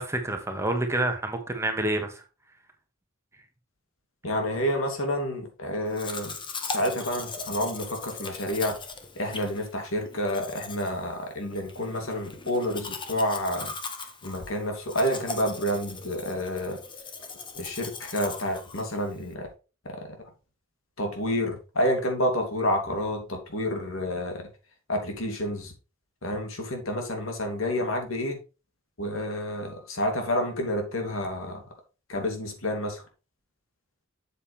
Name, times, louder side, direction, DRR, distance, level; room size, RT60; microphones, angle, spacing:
voice 1, 0.0-2.2, right 1 dB, 15° right, 1.5 m, -28 dB
voice 2, 4.2-6.3 6.7-8.8 9.1-13.7 14.2-16.8 17.5-19.5 19.9-20.1 21.0-24.5 24.9-25.7 26.2-28.4 29.0-31.6 32.1-33.0, equal, 90° left, 2.8 m, -29 dB
Domestic sounds home sounds, 5.9-19.3, left 4 dB, 25° left, 1.2 m, -39 dB
8.0 x 7.3 x 3.3 m
head